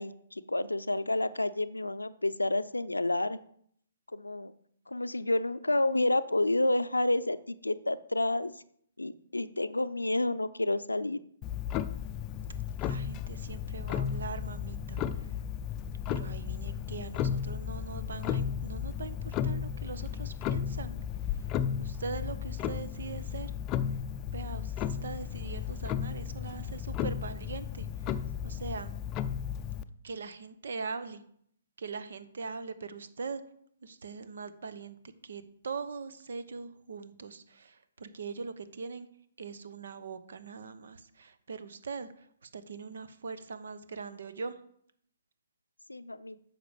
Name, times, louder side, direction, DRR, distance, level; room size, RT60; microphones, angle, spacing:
voice 1, 0.0-3.4 4.1-4.5 4.9-8.5 9.0-11.2 45.9-46.4, left 2 dB, 90° left, 14 dB, 0.5 m, -29 dB
Clock, 11.4-29.8, left 8 dB, 25° left, 0.5 m, -34 dB
voice 2, 12.8-15.3 16.1-21.0 21.3-21.4 21.8-23.5 24.3-28.9 30.0-31.2 31.8-33.4 33.8-35.0 35.2-39.1 39.4-44.6, right 4 dB, 65° right, 12 dB, 1.0 m, -41 dB
9.9 x 6.6 x 5.0 m, 0.66 s
figure-of-eight pair, 130°, 0 cm